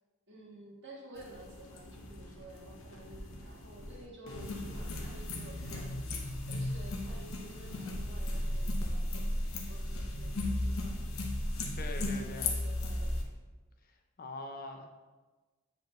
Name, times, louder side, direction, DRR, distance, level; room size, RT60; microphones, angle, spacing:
voice 1, 0.3-6.2 6.5-9.1 9.7-11.0 11.9-13.2, right 1 dB, 55° right, -3 dB, 1.6 m, -52 dB
sound 1, 1.2-13.2, left 1 dB, 70° left, 0.9 m, -36 dB
voice 2, 11.8-12.5 14.2-14.9, left 2 dB, 45° left, 4 dB, 0.6 m, -42 dB
7.8 x 4.9 x 3.1 m, 1.3 s
head